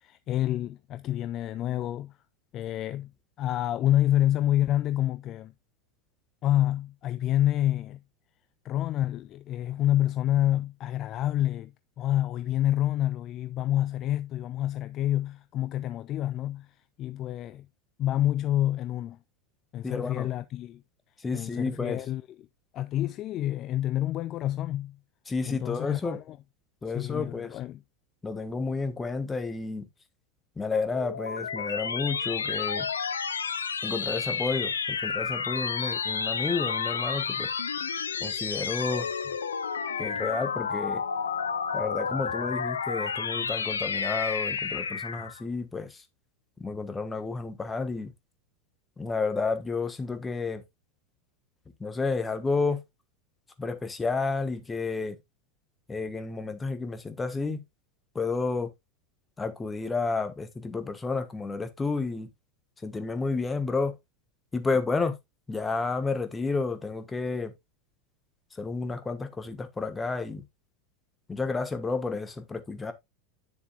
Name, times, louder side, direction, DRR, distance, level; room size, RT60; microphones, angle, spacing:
voice 1, 0.0-2.1 2.5-3.1 3.4-5.5 6.4-8.0 8.6-11.7 12.0-16.7 17.0-17.7 18.0-19.2 19.7-20.8 21.3-22.2 22.7-25.0 25.5-26.4 26.9-27.8, left 13 dB, 35° left, 0.4 m, -28 dB
voice 2, 19.8-20.3 21.2-22.0 25.3-26.2 26.8-27.6 28.2-29.9 30.6-32.9 33.8-37.5 38.2-39.1 40.0-41.0 41.7-46.0 46.6-48.1 49.0-50.6 51.8-52.8 53.6-55.2 55.9-57.6 58.1-58.7 59.4-62.3 62.8-63.9 64.5-65.1 65.5-67.5 68.6-70.4 71.3-72.9, left 4 dB, 15° left, 1.3 m, -31 dB
sound 1, 30.7-45.4, left 6 dB, 75° left, 0.7 m, -31 dB
9.7 x 7.0 x 2.4 m
figure-of-eight pair, 85°, 0 cm